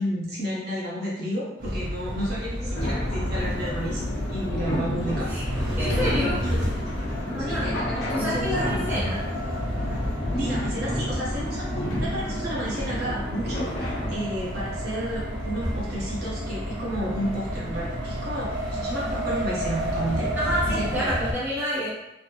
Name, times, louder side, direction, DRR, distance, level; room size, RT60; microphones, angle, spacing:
voice 1, 0.0-4.0 4.3-5.3 6.4-6.6 7.4-9.0 10.3-20.3 20.7-21.1, right 1 dB, 55° right, -6 dB, 0.8 m, -32 dB
sound 1, 1.6-21.3, equal, 70° right, 1.2 m, -30 dB
sound 2, 2.8-14.1, left 1 dB, 65° left, 0.8 m, -31 dB
voice 2, 5.8-6.4 7.3-7.7 8.1-9.2 20.4-21.9, equal, 10° right, -9 dB, 0.6 m, -28 dB
3.3 x 2.1 x 2.9 m, 0.92 s
head